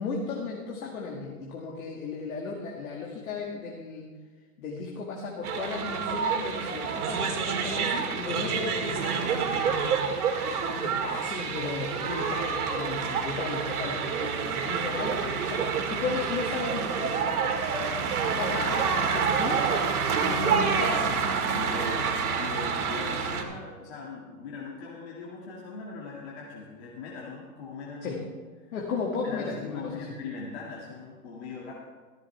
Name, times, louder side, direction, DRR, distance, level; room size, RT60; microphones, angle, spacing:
voice 1, 0.0-4.1 4.6-9.7 10.7-17.2 18.2-19.6 20.2-21.3 28.0-28.2 28.7-30.1, left 4 dB, 70° left, -1 dB, 2.2 m, -35 dB
sound 1, 5.4-23.4, right 6 dB, 85° right, 2.2 m, -28 dB
voice 2, 10.3-11.0 21.4-28.3 29.2-31.7, left 4 dB, 45° left, -4 dB, 2.2 m, -40 dB
14.0 x 14.0 x 3.3 m, 1.4 s
hypercardioid pair, 175°, 44 cm